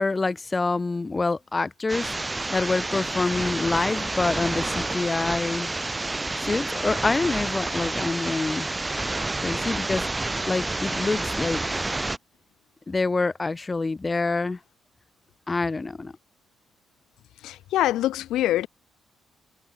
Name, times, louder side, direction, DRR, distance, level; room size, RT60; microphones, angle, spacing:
voice 1, 0.0-2.1 2.5-5.7 6.4-8.7 9.4-10.1 10.5-11.6 12.9-14.6 15.5-16.1, left 3 dB, 30° left, 2.7 m, -26 dB
sound 1, 1.9-12.2, right 2 dB, 20° right, 6.6 m, -29 dB
voice 2, 17.4-18.7, left 14 dB, 80° left, 1.9 m, -24 dB
supercardioid pair, 55°, 0 cm